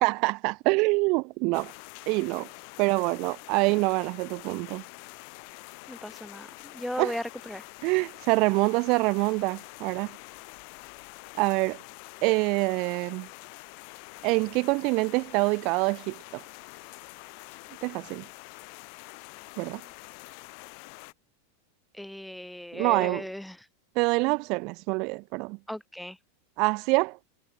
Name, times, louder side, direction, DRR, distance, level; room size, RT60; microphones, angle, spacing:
voice 1, 0.0-1.7 2.1-2.5 2.8-4.8 7.0-7.2 7.8-10.1 11.4-11.8 12.2-13.3 14.2-16.4 17.8-18.2 19.6-19.8 22.7-23.3 24.0-25.6 26.6-27.2, right 28 dB, 40° right, 0.3 m, -26 dB
sound 1, 1.5-21.1, left 40 dB or more, 45° left, 4.7 m, -46 dB
voice 2, 5.9-6.5 6.7-7.6 22.0-23.6 25.7-26.2, left 1 dB, ahead, 2.0 m, -36 dB
supercardioid pair, 155°, 0 cm